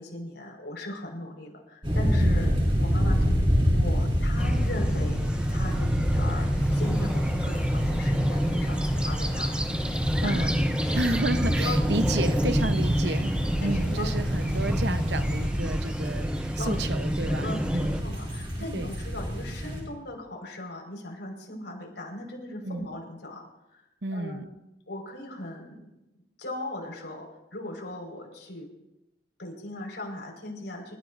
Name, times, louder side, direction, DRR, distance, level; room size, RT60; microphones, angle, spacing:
voice 1, 0.0-2.5 2.8-3.4 3.7-5.2 5.5-9.5 9.8-11.1 11.6-11.8 12.1-12.3 13.0-13.3 13.6-14.1 16.6-16.8 17.2-24.4 24.9-25.9 26.4-28.7 29.4-30.9, left 1 dB, 80° left, 1 dB, 5.2 m, -38 dB
sound 1, 1.8-19.8, equal, 30° right, 6.2 m, -27 dB
sound 2, 4.4-18.0, equal, 5° right, 0.7 m, -29 dB
sound 3, 6.6-15.5, right 1 dB, 10° left, 2.2 m, -39 dB
voice 2, 10.2-10.6 10.9-18.0 18.7-19.0 22.6-22.9 24.0-24.5, right 2 dB, 70° right, 9 dB, 1.0 m, -31 dB
29.0 x 15.0 x 2.7 m, 0.93 s
head